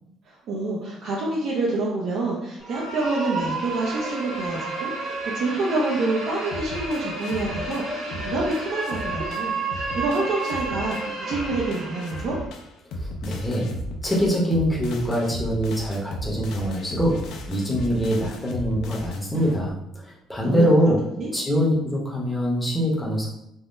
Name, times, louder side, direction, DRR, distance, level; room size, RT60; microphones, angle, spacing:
voice 1, 0.3-12.4 20.4-20.9 21.2-21.3, right 2 dB, 60° right, -4 dB, 0.6 m, -27 dB
sound 1, 2.6-12.4, right 3 dB, 75° right, 1.4 m, -31 dB
sound 2, 6.5-19.7, left 1 dB, 70° left, 0.4 m, -36 dB
voice 2, 13.0-13.7 14.0-19.8 20.0-21.0 21.3-23.3, equal, 5° left, -4 dB, 0.8 m, -23 dB
3.5 x 2.0 x 2.5 m, 0.81 s
cardioid pair, 140°, 0 cm